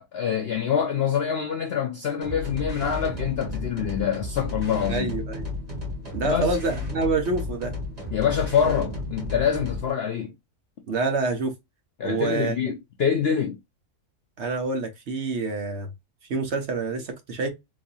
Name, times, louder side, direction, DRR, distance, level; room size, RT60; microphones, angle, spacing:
voice 1, 0.0-5.1 6.2-6.6 8.1-10.3 12.0-13.6, left 8 dB, 65° left, 0.6 m, -25 dB
sound 1, 2.2-9.9, left 2 dB, 25° right, 1.9 m, -33 dB
voice 2, 4.8-5.4 6.1-7.8 10.9-11.5 12.0-12.6 14.4-15.9 16.3-17.5, right 3 dB, 55° right, 0.9 m, -27 dB
3.9 x 2.6 x 2.7 m
omnidirectional pair, 1.6 m